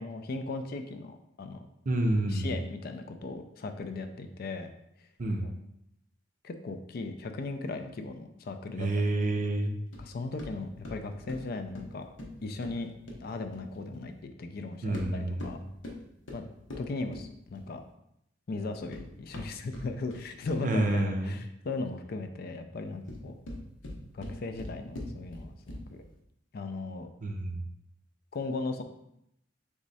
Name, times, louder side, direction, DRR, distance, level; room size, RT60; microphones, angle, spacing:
voice 1, 0.0-1.7 2.3-4.7 5.4-5.5 6.4-9.0 9.3-9.4 10.0-12.0 12.4-12.9 13.2-15.6 16.3-16.4 16.8-17.8 18.5-23.3 24.1-26.0 26.5-27.1 28.3-28.8, left 3 dB, 50° left, 7 dB, 0.4 m, -37 dB
voice 2, 1.9-2.5 5.2-5.5 8.8-9.8 14.8-15.6 20.6-21.4 27.2-27.6, right 1 dB, 45° right, 3 dB, 0.6 m, -28 dB
sound 1, 9.9-14.1 14.8-17.9 18.6-20.8 22.9-26.1, left 1 dB, 75° left, 0.9 m, -44 dB
3.6 x 3.1 x 4.0 m, 0.78 s
head